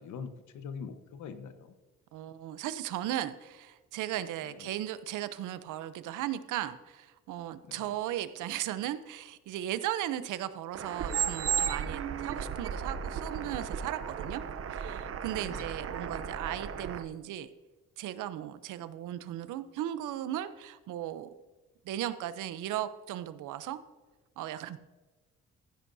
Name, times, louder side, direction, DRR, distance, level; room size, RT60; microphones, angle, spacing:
voice 1, 0.0-1.7 4.4-4.7 7.6-8.0 15.4-15.7, left 6 dB, 75° left, 9 dB, 1.1 m, -43 dB
voice 2, 2.1-14.4 14.7-17.5 18.0-21.3 21.8-23.8 24.4-24.8, right 12 dB, 85° right, 13 dB, 0.7 m, -36 dB
sound 1, 10.7-17.0, right 7 dB, 50° right, 0.7 m, -34 dB
14.5 x 10.0 x 2.7 m, 1.2 s
cardioid pair, 90°, 30 cm